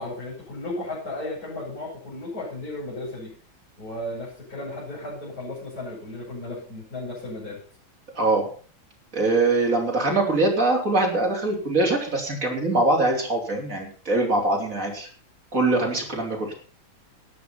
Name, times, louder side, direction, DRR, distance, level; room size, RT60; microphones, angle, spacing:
voice 1, 0.0-3.3 3.8-7.6, left 2 dB, 45° left, -10 dB, 8.3 m, -34 dB
voice 2, 8.1-8.5 9.1-15.1 15.5-16.5, right 2 dB, 40° right, 1 dB, 4.2 m, -23 dB
13.0 x 10.5 x 5.8 m, 0.42 s
omnidirectional pair, 2.2 m